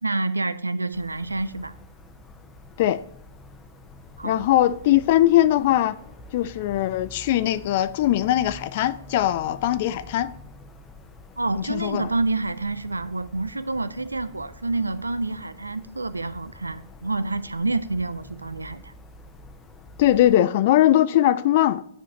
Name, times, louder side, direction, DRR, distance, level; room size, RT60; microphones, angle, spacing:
voice 1, 0.0-1.7 4.2-4.4 11.4-18.9, right 2 dB, 80° right, 0.5 m, -28 dB
sound 1, 0.9-20.4, left 2 dB, 15° left, 0.8 m, -47 dB
voice 2, 4.2-6.0 6.3-10.3 11.6-12.1 20.0-21.8, left 13 dB, 45° left, 0.3 m, -20 dB
9.9 x 4.9 x 2.8 m
figure-of-eight pair, 115°, 0 cm